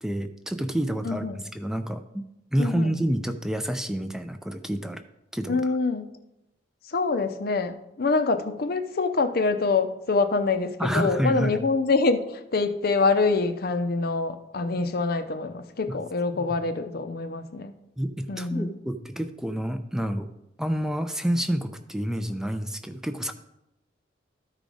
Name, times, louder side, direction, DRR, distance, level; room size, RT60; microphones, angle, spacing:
voice 1, 0.0-2.2 2.5-5.0 5.3-5.6 10.8-11.6 16.3-16.4 18.0-20.3 20.6-23.3, equal, 5° right, 8 dB, 0.4 m, -28 dB
voice 2, 1.0-1.4 2.6-3.0 5.5-6.1 6.8-17.7 18.3-18.7, left 3 dB, 55° left, 9 dB, 0.6 m, -25 dB
13.0 x 4.9 x 3.9 m, 0.88 s
head